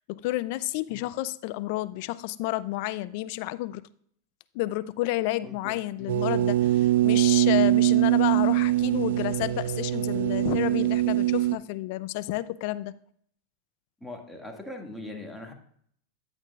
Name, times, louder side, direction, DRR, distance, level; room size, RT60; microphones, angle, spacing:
voice 1, 0.1-3.8 4.5-12.9, left 17 dB, 60° left, 16 dB, 0.5 m, -30 dB
voice 2, 5.4-6.1 14.0-15.5, left 2 dB, ahead, 0 dB, 2.0 m, -41 dB
sound 1, 6.1-11.6, right 15 dB, 75° right, 0.4 m, -23 dB
10.5 x 8.8 x 2.4 m, 0.63 s
hypercardioid pair, 110°, 0 cm